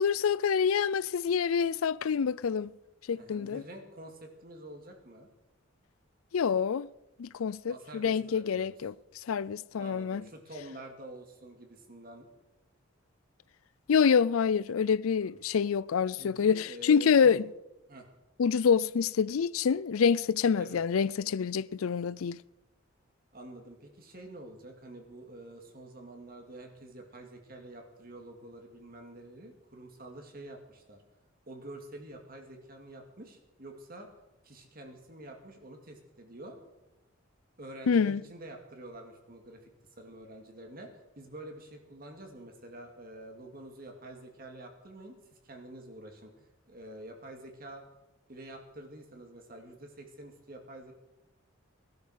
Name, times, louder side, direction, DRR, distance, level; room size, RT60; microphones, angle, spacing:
voice 1, 0.0-2.7 3.1-3.6 6.3-6.9 7.2-8.9 9.3-10.2 13.9-17.4 18.4-22.4 37.9-38.2, left 6 dB, 90° left, 0.4 m, -26 dB
voice 2, 3.1-5.3 7.7-8.8 9.8-12.3 15.3-15.4 16.2-17.4 17.9-18.1 20.6-20.8 23.3-31.0 31.5-34.1 34.4-36.6 37.6-39.7 40.0-47.8 48.3-50.9, right 1 dB, 45° right, 2.3 m, -47 dB
18.5 x 12.0 x 6.4 m
head